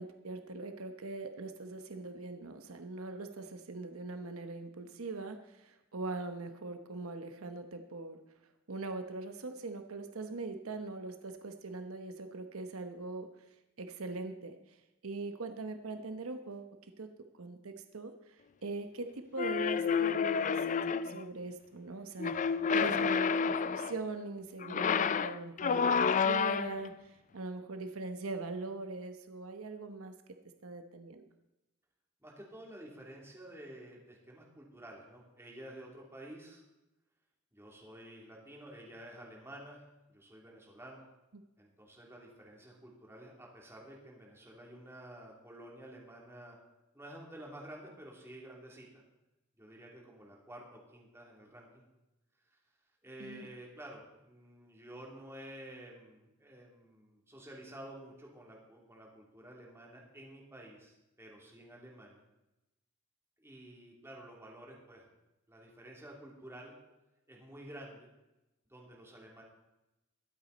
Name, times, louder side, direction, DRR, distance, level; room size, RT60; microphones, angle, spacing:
voice 1, 0.0-8.2 8.7-13.3 13.8-14.5 15.0-17.1 17.4-20.6 21.0-22.3 22.7-30.1 30.6-31.3 41.3-41.4 53.2-53.5, right 3 dB, 85° right, 7 dB, 1.0 m, -41 dB
sound 1, 19.4-21.2 22.2-24.0 24.6-26.9, left 6 dB, 35° left, 0.4 m, -30 dB
voice 2, 32.2-36.6 37.5-39.9 40.1-41.0 41.6-46.6 46.9-49.0 49.6-51.8 52.5-52.6 53.0-62.2 63.4-65.1 65.5-66.7 67.3-68.1 68.7-69.4, right 1 dB, 10° right, -2 dB, 3.0 m, -51 dB
22.5 x 8.4 x 4.1 m, 0.96 s
head